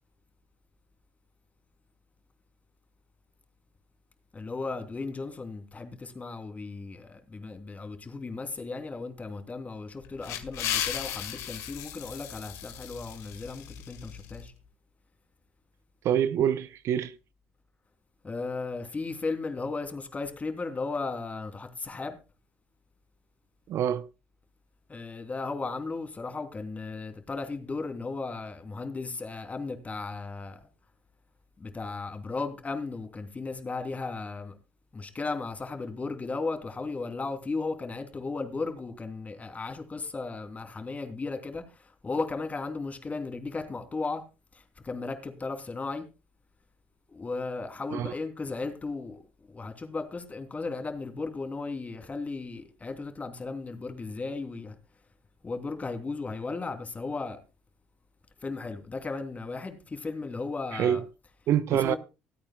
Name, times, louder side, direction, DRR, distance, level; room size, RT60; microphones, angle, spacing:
voice 1, 4.3-14.5 18.2-22.2 24.9-30.6 31.6-34.5 34.9-44.2 44.5-46.0 47.1-49.2 49.5-54.7 55.4-57.4 58.4-61.0 61.7-62.0, left 3 dB, 25° left, 3.0 m, -35 dB
sound 1, 9.9-14.4, left 11 dB, 65° left, 1.9 m, -36 dB
voice 2, 16.0-17.1 23.7-24.1 47.9-48.1 60.7-61.0 61.5-62.0, right 10 dB, 55° right, 0.7 m, -26 dB
25.0 x 8.7 x 2.3 m
hypercardioid pair, 55°, 5 cm